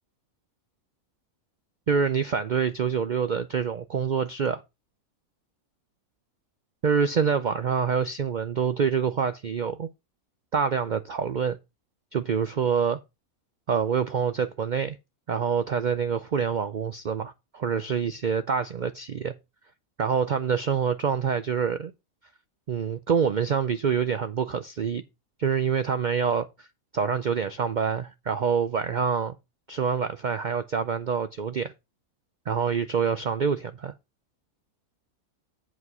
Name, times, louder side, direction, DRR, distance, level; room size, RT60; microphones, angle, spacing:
voice 1, 1.9-4.6 6.8-9.9 10.5-11.6 12.1-13.0 13.7-15.0 15.3-19.3 20.0-21.9 22.7-25.0 25.4-26.7 26.9-29.3 29.7-31.7 32.5-33.9, right 6 dB, 85° right, 0.4 m, -26 dB
8.3 x 4.8 x 5.4 m
omnidirectional pair, 1.5 m